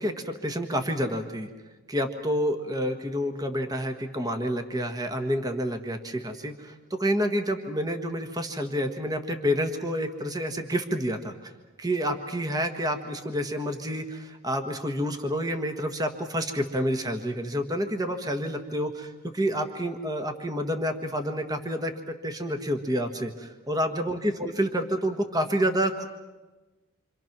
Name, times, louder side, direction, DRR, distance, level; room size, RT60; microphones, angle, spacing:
voice 1, 0.0-1.5 1.9-11.5 11.8-26.0, equal, 20° right, 5 dB, 1.5 m, -29 dB
27.5 x 26.0 x 6.0 m, 1.2 s
head